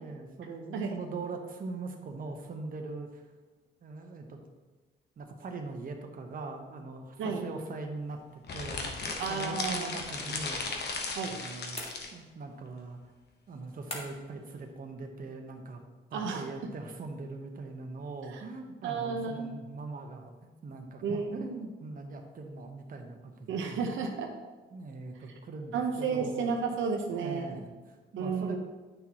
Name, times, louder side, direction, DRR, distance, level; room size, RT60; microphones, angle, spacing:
voice 1, 0.0-3.3 3.8-4.4 5.2-11.0 11.2-11.8 12.1-13.1 13.5-15.8 16.1-23.9 24.7-26.5 27.2-28.6, right 3 dB, 45° right, 3 dB, 1.1 m, -41 dB
sound 1, 8.4-12.1, left 3 dB, 55° left, 1.1 m, -36 dB
voice 2, 9.2-9.9 11.1-11.4 16.1-16.7 18.3-18.4 18.8-19.5 21.0-21.4 23.5-24.3 25.7-27.6 28.2-28.6, right 5 dB, 80° right, 2 dB, 0.8 m, -32 dB
sound 2, 11.7-12.5 13.9-14.4, left 1 dB, 30° left, 1.7 m, -42 dB
9.2 x 6.1 x 3.0 m, 1.3 s
cardioid pair, 90°, 20 cm